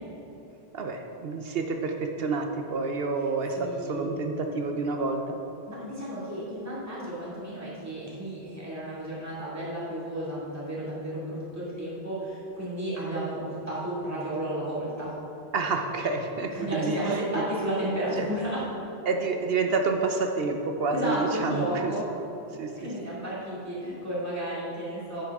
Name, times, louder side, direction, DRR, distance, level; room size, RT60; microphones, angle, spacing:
voice 1, 0.7-5.4 15.5-17.2 18.2-18.3 19.1-21.9 22.5-22.7, right 4 dB, 65° right, 4 dB, 0.9 m, -28 dB
voice 2, 3.5-4.1 5.7-15.1 16.5-18.7 20.9-22.0 22.8-25.2, right 1 dB, 15° right, -9 dB, 2.4 m, -32 dB
10.0 x 8.9 x 3.5 m, 3.0 s
omnidirectional pair, 1.1 m